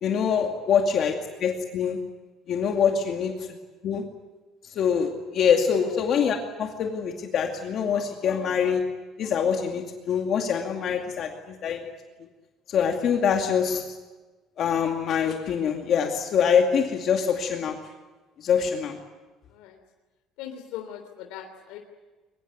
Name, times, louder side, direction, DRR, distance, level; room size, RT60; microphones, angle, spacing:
voice 1, 0.0-2.0 2.5-3.3 3.8-4.0 4.8-8.8 9.2-11.9 12.7-13.9 14.6-17.8 18.4-19.0, left 7 dB, 45° left, 2 dB, 2.4 m, -24 dB
voice 2, 20.4-21.8, left 10 dB, 90° left, 4 dB, 3.3 m, -39 dB
23.0 x 22.0 x 9.6 m, 1.2 s
cardioid pair, 160°, 0 cm